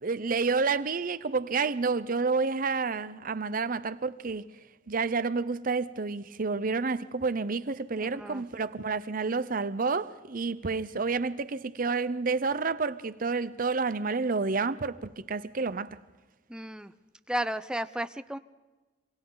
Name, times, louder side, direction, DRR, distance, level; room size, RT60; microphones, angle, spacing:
voice 1, 0.0-4.5 4.9-16.0, right 4 dB, 50° right, 0.7 m, -29 dB
voice 2, 8.0-8.4 16.5-16.9 17.3-18.4, right 1 dB, 5° right, 0.6 m, -33 dB
27.0 x 26.0 x 4.0 m
head